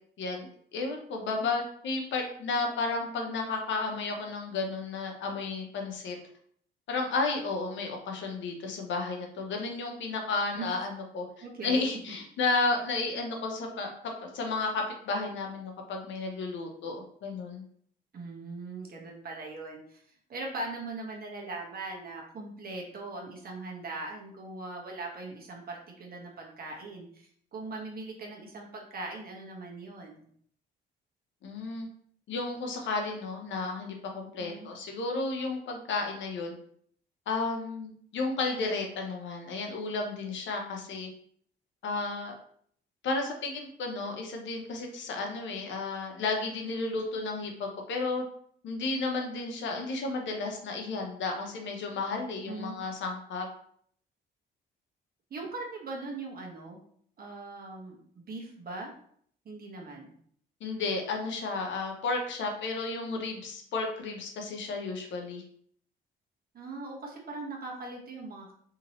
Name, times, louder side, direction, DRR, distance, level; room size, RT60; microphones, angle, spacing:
voice 1, 0.2-6.2 6.9-11.2 11.6-13.9 14.2-17.6 31.4-31.9 32.3-36.5 37.3-41.1 41.8-42.3 43.0-48.2 48.6-53.5 60.6-65.4, left 3 dB, 70° left, 2 dB, 0.7 m, -32 dB
voice 2, 11.4-11.8 18.1-20.0 20.3-30.3 34.4-34.7 52.5-52.8 55.3-56.8 57.2-58.9 59.4-60.1 66.5-68.5, right 3 dB, 50° right, 0 dB, 1.0 m, -40 dB
2.8 x 2.7 x 2.9 m, 0.63 s
cardioid pair, 90°, 20 cm